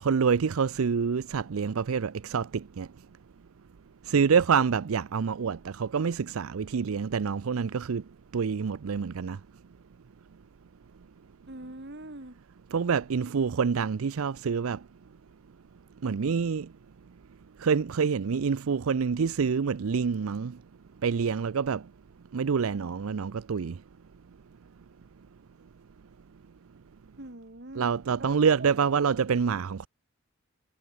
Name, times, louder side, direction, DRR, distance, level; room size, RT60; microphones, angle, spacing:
voice 1, 0.0-2.9 4.1-8.0 8.3-9.4 12.7-14.8 16.0-16.7 17.6-20.5 21.0-21.8 22.3-23.7 27.8-29.9, right 6 dB, 85° right, 0.5 m, -27 dB
voice 2, 11.5-12.4 27.2-29.1, right 2 dB, 55° right, 2.5 m, -44 dB
head